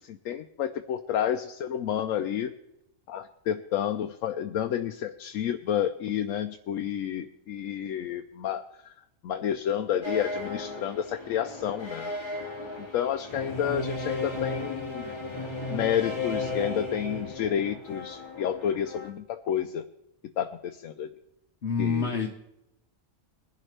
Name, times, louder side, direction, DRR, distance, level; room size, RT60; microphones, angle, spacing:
voice 1, 0.1-2.5 3.1-8.6 9.2-12.1 12.9-15.1 15.7-19.8 20.4-21.1 21.8-22.1, left 9 dB, 75° left, 7 dB, 1.0 m, -30 dB
sound 1, 10.0-19.1, left 2 dB, 20° left, 2.1 m, -35 dB
voice 2, 21.6-22.3, left 5 dB, 55° left, 1 dB, 1.4 m, -27 dB
21.5 x 11.5 x 3.3 m, 0.85 s
omnidirectional pair, 1.4 m